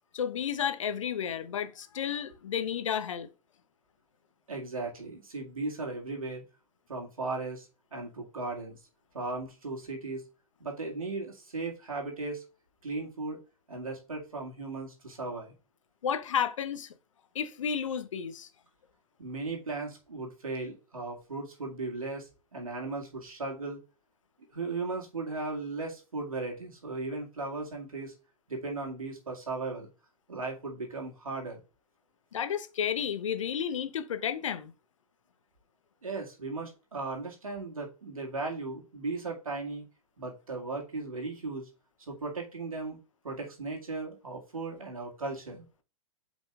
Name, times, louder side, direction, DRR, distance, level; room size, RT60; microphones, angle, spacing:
voice 1, 0.1-3.3 16.0-16.9 17.3-18.5 32.3-34.7, left 8 dB, 60° left, 0.9 m, -32 dB
voice 2, 4.5-6.4 6.9-8.8 9.1-10.2 10.6-12.4 12.8-13.4 13.7-15.5 19.2-23.8 24.5-28.1 28.5-29.9 30.3-31.6 36.0-39.8 40.2-41.7 42.1-43.0 43.2-45.6, right 3 dB, 75° right, 2.2 m, -37 dB
8.5 x 5.2 x 2.5 m
figure-of-eight pair, 105°, 18 cm